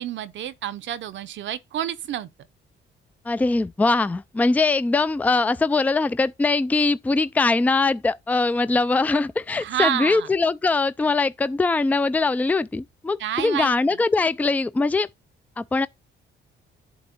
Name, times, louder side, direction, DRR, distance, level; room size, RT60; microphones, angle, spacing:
voice 1, 0.0-2.3 9.6-10.3 13.2-14.0, right 11 dB, 70° right, 0.7 m, -29 dB
voice 2, 3.3-15.1 15.6-15.9, left 3 dB, 10° left, 0.3 m, -22 dB
7.9 x 2.9 x 5.8 m
cardioid pair, 90°, 20 cm